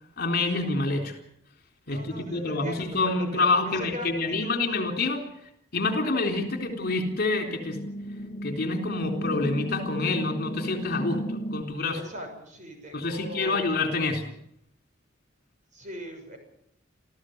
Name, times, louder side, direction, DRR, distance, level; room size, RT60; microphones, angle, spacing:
voice 1, 0.2-1.1 1.9-5.2 5.7-7.8 8.4-12.0 12.9-14.3, left 3 dB, 50° left, 4 dB, 3.7 m, -27 dB
voice 2, 1.9-4.1 4.4-4.5 11.9-13.7 15.7-16.4, equal, 40° right, 4 dB, 6.7 m, -40 dB
sound 1, 6.2-11.6, equal, 30° left, 1.8 m, -35 dB
27.5 x 15.0 x 8.0 m, 0.74 s
head